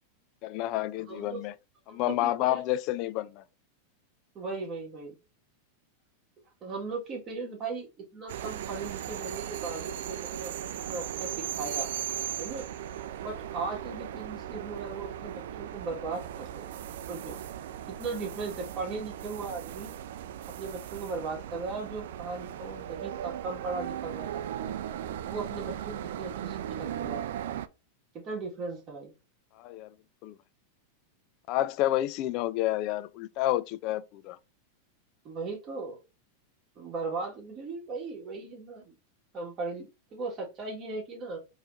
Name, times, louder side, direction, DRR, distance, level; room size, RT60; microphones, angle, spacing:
voice 1, 0.4-1.5 1.9-3.4 29.6-29.9 30.2-30.4 31.5-34.4, left 14 dB, 50° left, 0.4 m, -29 dB
voice 2, 1.1-1.4 1.9-2.6 4.3-5.2 6.6-10.6 10.9-11.9 12.4-12.7 13.2-16.7 17.1-17.4 17.9-19.9 20.6-24.4 25.3-27.2 28.1-29.1 35.2-36.0 36.8-38.9 39.3-41.4, right 3 dB, 35° right, 1.9 m, -37 dB
sound 1, 8.3-27.7, right 10 dB, 75° right, 0.4 m, -37 dB
4.7 x 3.1 x 2.6 m
hypercardioid pair, 120°, 0 cm